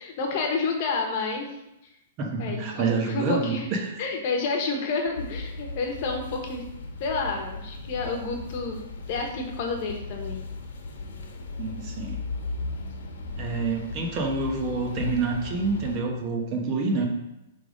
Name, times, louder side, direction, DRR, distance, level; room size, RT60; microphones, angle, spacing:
voice 1, 0.0-1.6 2.4-3.7 4.0-6.6 7.0-8.8 9.1-10.4, left 4 dB, 45° left, 2 dB, 1.2 m, -29 dB
voice 2, 2.2-3.9 11.6-12.2 13.4-17.1, right 4 dB, 30° right, 2 dB, 1.0 m, -27 dB
sound 1, 5.1-16.0, left 3 dB, 80° left, 1.2 m, -36 dB
5.8 x 3.5 x 5.1 m, 0.88 s
hypercardioid pair, 155°, 0 cm